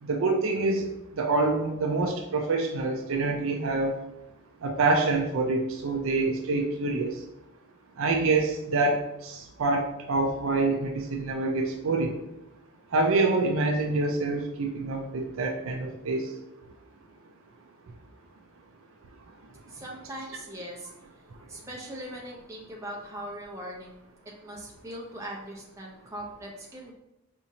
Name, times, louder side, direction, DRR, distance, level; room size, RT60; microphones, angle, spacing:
voice 1, 0.0-4.0 4.6-7.2 8.0-12.2 12.9-16.3, right 3 dB, 60° right, 3 dB, 0.4 m, -26 dB
voice 2, 19.7-20.9 21.5-23.9 24.4-26.9, right 1 dB, 15° right, -3 dB, 0.8 m, -40 dB
4.9 x 2.8 x 2.8 m, 0.88 s
head